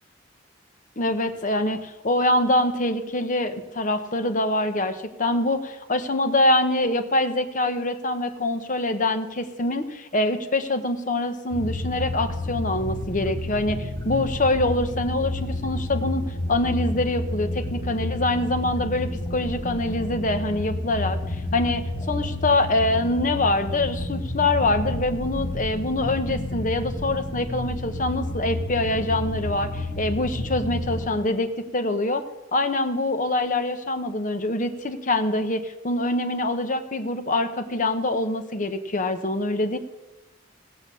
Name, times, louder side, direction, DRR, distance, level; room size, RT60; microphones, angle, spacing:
voice 1, 1.0-21.2 21.5-32.2 32.5-39.8, left 2 dB, 40° left, 7 dB, 1.1 m, -25 dB
sound 1, 11.5-31.1, left 1 dB, 15° left, 1.5 m, -30 dB
17.5 x 6.8 x 7.0 m, 1.0 s
head